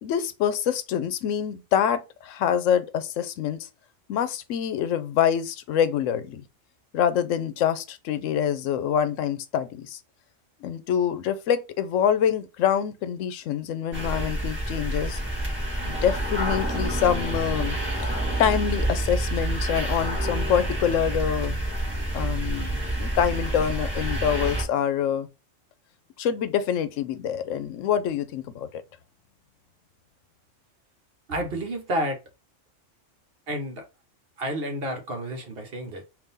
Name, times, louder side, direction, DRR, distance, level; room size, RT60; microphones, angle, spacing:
voice 1, 0.0-3.7 4.1-6.4 6.9-10.0 10.6-15.2 15.8-17.8 18.0-18.1 18.4-21.6 22.1-25.3 26.2-28.8, left 9 dB, 80° left, 0.9 m, -25 dB
sound 1, 13.9-24.6, right 1 dB, 10° right, 1.6 m, -28 dB
voice 2, 31.3-32.2 33.5-33.9 34.4-36.0, right 1 dB, 55° right, 1.0 m, -30 dB
3.6 x 2.6 x 3.9 m
omnidirectional pair, 1.3 m